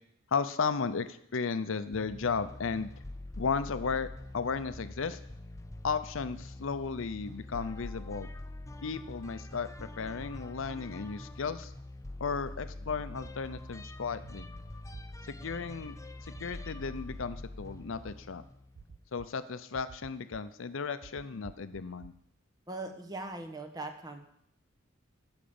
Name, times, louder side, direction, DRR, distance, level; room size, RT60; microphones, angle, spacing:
voice 1, 0.3-2.9 3.4-4.1 4.3-5.2 5.8-8.3 8.8-11.7 12.2-14.5 15.3-15.9 16.2-18.4 19.1-22.1, left 5 dB, 70° left, 12 dB, 0.6 m, -34 dB
sound 1, 1.9-19.2, left 2 dB, 15° left, 0.5 m, -45 dB
sound 2, 13.2-13.6 14.2-14.5 14.9-15.0 15.5-15.9 16.3-16.7 17.2-17.3 17.8-18.1 18.8-19.3 19.7-20.4 21.0-22.1, right 5 dB, 50° right, 0.4 m, -50 dB
voice 2, 22.7-24.2, right 2 dB, 20° right, 4 dB, 1.1 m, -40 dB
12.5 x 5.2 x 7.0 m, 0.72 s
head